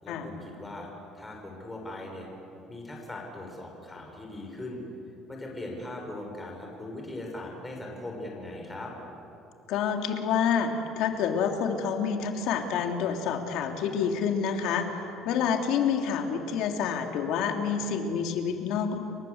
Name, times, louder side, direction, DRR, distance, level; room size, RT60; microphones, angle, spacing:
voice 1, 0.0-2.3 2.7-4.8 5.3-8.9, left 1 dB, 10° left, 0 dB, 5.9 m, -39 dB
voice 2, 9.7-19.0, left 7 dB, 70° left, 4 dB, 3.2 m, -28 dB
29.5 x 23.0 x 8.1 m, 2.8 s
cardioid pair, 140°, 0 cm